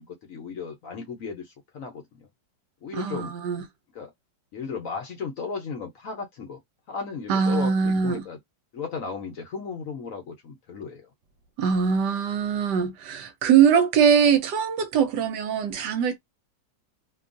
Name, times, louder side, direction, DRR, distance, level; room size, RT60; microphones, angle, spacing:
voice 1, 0.0-2.3 2.8-3.3 3.9-4.1 4.5-6.6 6.9-8.4 8.7-11.1, left 5 dB, 60° left, 0.9 m, -35 dB
voice 2, 2.9-3.7 7.3-8.3 11.6-16.2, right 7 dB, 75° right, 1.2 m, -22 dB
2.9 x 2.3 x 2.5 m
omnidirectional pair, 1.9 m